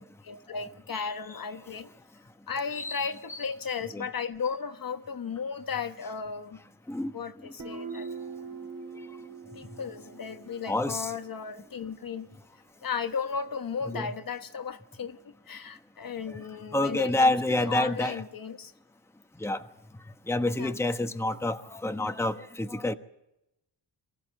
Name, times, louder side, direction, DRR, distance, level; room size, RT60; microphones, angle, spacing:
voice 1, 0.0-1.9 2.5-6.6 7.1-8.1 9.5-12.3 12.8-18.7 20.6-20.7, left 6 dB, 50° left, 1.2 m, -35 dB
Guitar, 7.6-11.2, right 5 dB, 45° right, 3.5 m, -42 dB
voice 2, 10.7-11.1 13.9-14.1 16.7-18.2 19.4-19.6 20.3-22.9, left 2 dB, 5° left, 1.1 m, -28 dB
23.5 x 15.0 x 7.6 m
cardioid pair, 90°, 43 cm